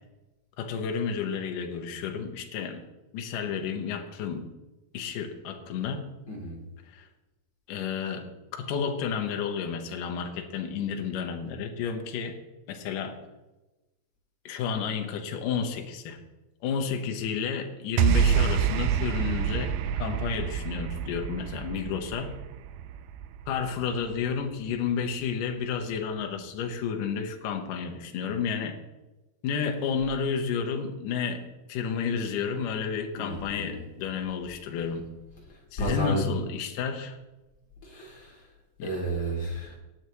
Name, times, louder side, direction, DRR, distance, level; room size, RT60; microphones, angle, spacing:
voice 1, 0.6-2.8 3.1-4.5 4.9-6.0 6.9-7.1 7.7-8.2 8.5-12.4 12.7-13.2 14.5-16.2 16.6-22.3 23.5-28.8 29.4-31.4 31.7-35.1 35.7-37.2 38.8-38.9, left 6 dB, 65° left, 4 dB, 2.4 m, -31 dB
voice 2, 6.3-6.6 33.1-33.8 35.8-36.2 37.8-38.4 38.8-39.8, right 1 dB, 35° left, -2 dB, 3.4 m, -32 dB
sound 1, 18.0-24.4, right 8 dB, 80° right, 2.2 m, -27 dB
18.5 x 8.4 x 3.1 m, 1.0 s
omnidirectional pair, 4.5 m